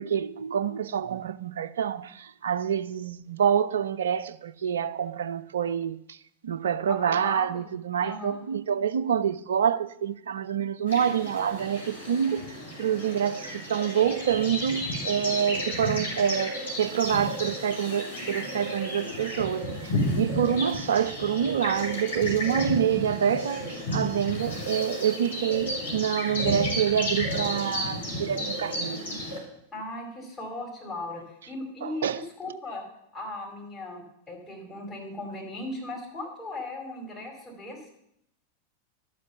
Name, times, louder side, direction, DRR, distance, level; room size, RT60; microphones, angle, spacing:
voice 1, 0.0-29.0 31.8-32.2, right 8 dB, 65° right, 0.5 m, -27 dB
voice 2, 6.9-7.6 8.0-8.4 29.7-32.8 33.1-37.9, left 2 dB, 15° left, 4.7 m, -38 dB
sound 1, 10.9-29.4, equal, 75° left, 4.1 m, -32 dB
12.5 x 7.5 x 7.1 m
figure-of-eight pair, 90°, 0 cm